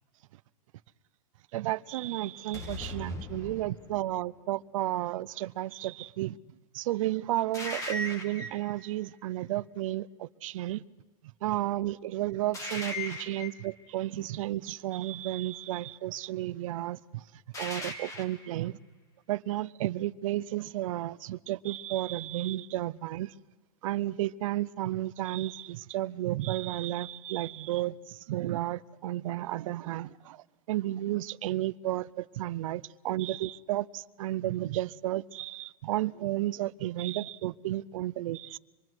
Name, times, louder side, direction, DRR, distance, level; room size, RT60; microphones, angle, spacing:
voice 1, 1.5-6.4 6.7-10.8 11.4-17.2 17.6-18.8 19.3-23.3 23.8-38.6, right 15 dB, 65° right, 0.6 m, -32 dB
sound 1, 2.5-4.2 7.5-8.7 12.5-13.7 17.5-18.5, left 1 dB, 15° left, 2.5 m, -38 dB
26.0 x 22.5 x 6.2 m
supercardioid pair, 160°, 18 cm